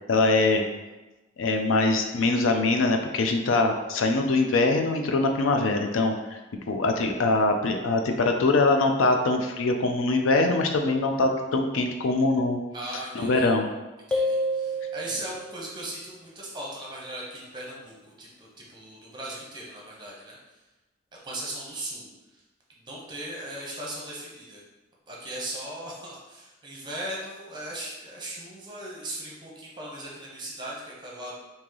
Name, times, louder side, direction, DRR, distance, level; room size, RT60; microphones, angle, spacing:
voice 1, 0.1-0.6 1.4-6.4 6.7-12.6 12.9-13.7, left 3 dB, 85° left, 4 dB, 0.4 m, -23 dB
voice 2, 12.7-13.5 14.1-20.4 21.2-22.1 22.7-24.6 25.1-31.3, right 1 dB, 25° right, -4 dB, 0.8 m, -38 dB
sound 1, 14.1-15.6, equal, 5° left, 0.3 m, -28 dB
3.0 x 2.8 x 3.7 m, 1.1 s
head